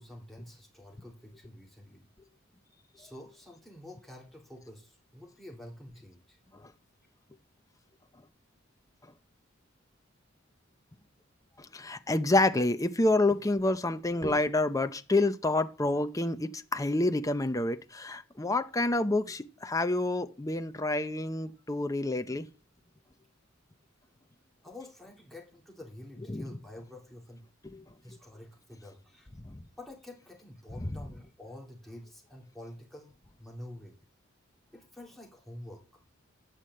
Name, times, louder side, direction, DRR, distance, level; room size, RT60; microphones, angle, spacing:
voice 1, 0.0-2.1 3.0-6.4 24.6-27.5 28.0-29.3 29.8-33.1 33.4-34.0 34.7-35.8, left 1 dB, ahead, 2.7 m, -48 dB
voice 2, 11.6-22.5 26.3-26.5 27.7-27.8 29.4-29.6 30.8-30.9, left 2 dB, 15° left, 0.7 m, -28 dB
10.0 x 4.9 x 7.7 m
head